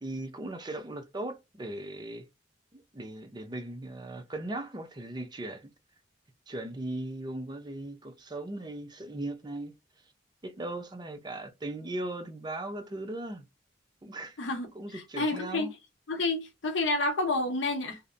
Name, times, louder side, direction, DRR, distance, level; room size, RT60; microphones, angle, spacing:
voice 1, 0.0-2.2 2.7-5.7 6.5-9.7 10.4-13.5 14.0-14.4 14.7-15.7, right 1 dB, 25° right, 0.5 m, -38 dB
voice 2, 15.2-15.7 16.1-18.0, left 2 dB, 80° left, 0.7 m, -29 dB
2.7 x 2.1 x 2.4 m
head